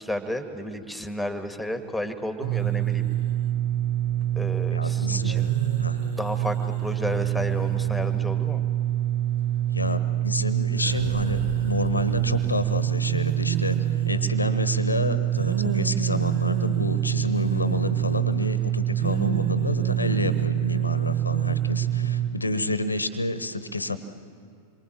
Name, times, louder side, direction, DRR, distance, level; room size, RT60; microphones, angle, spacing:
voice 1, 0.0-3.0 4.4-5.5 6.2-8.6, left 1 dB, ahead, 7 dB, 1.7 m, -32 dB
sound 1, 2.4-22.3, right 11 dB, 60° right, 1.4 m, -25 dB
voice 2, 4.7-5.3 5.8-6.0 9.7-13.8 14.1-24.0, left 2 dB, 80° left, 13 dB, 1.0 m, -29 dB
27.5 x 23.5 x 7.4 m, 2.4 s
figure-of-eight pair, 90°, 0 cm